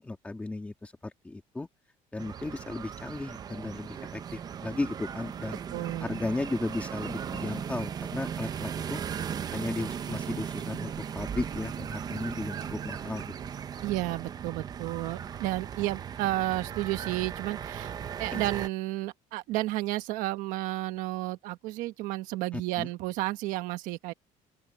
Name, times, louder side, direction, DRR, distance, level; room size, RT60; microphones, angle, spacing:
voice 1, 0.0-1.7 2.1-5.6 6.0-9.0 9.5-13.3 18.3-18.4 22.5-22.9, left 2 dB, 10° left, 3.1 m, -35 dB
sound 1, 2.2-18.7, right 8 dB, 30° right, 0.7 m, -37 dB
voice 2, 5.7-6.2 13.8-17.9 18.2-24.1, right 17 dB, 80° right, 1.4 m, -32 dB
open air
cardioid pair, 160°, 13 cm